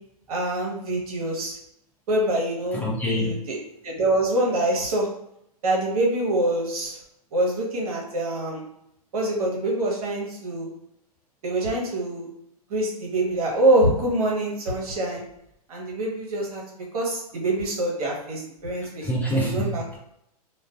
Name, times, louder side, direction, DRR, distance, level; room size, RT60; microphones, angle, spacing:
voice 1, 0.3-1.6 2.1-3.6 3.8-5.1 5.6-7.0 7.3-8.7 9.1-10.7 11.4-12.3 12.7-15.2 15.7-19.1 19.4-19.8, right 1 dB, 70° right, -2 dB, 0.9 m, -25 dB
voice 2, 2.7-3.3 19.0-20.0, equal, 10° left, -4 dB, 0.6 m, -26 dB
2.4 x 2.2 x 2.3 m, 0.78 s
hypercardioid pair, 115°, 20 cm